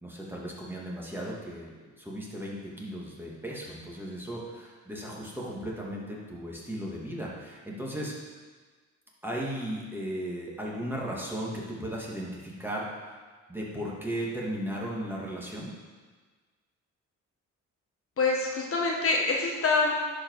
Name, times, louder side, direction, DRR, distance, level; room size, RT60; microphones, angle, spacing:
voice 1, 0.0-8.1 9.2-13.1 13.5-15.7, equal, 5° right, -4 dB, 2.3 m, -36 dB
voice 2, 18.2-19.9, left 3 dB, 45° left, -1 dB, 1.4 m, -25 dB
10.5 x 5.2 x 4.8 m, 1.4 s
cardioid pair, 90°, 30 cm